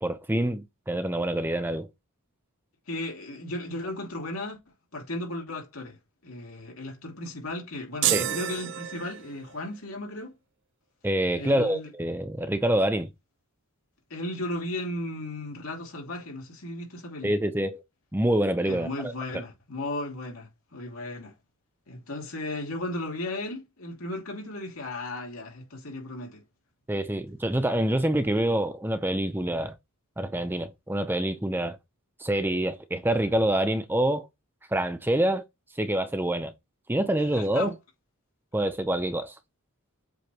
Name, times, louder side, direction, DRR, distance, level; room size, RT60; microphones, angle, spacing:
voice 1, 0.0-1.9 8.1-8.3 11.0-13.1 17.2-17.8 18.1-19.1 26.9-29.8 30.2-31.8 32.2-34.3 34.7-35.4 35.8-36.5 36.9-37.7 38.5-39.3, right 1 dB, 10° right, 0.7 m, -26 dB
voice 2, 2.9-4.6 4.9-5.9 6.2-10.3 11.3-11.9 14.1-17.3 18.6-21.3 21.9-26.4 37.3-37.7, left 1 dB, 75° left, 3.0 m, -35 dB
sound 1, 8.0-9.6, right 12 dB, 60° right, 0.6 m, -29 dB
7.7 x 3.3 x 4.4 m
head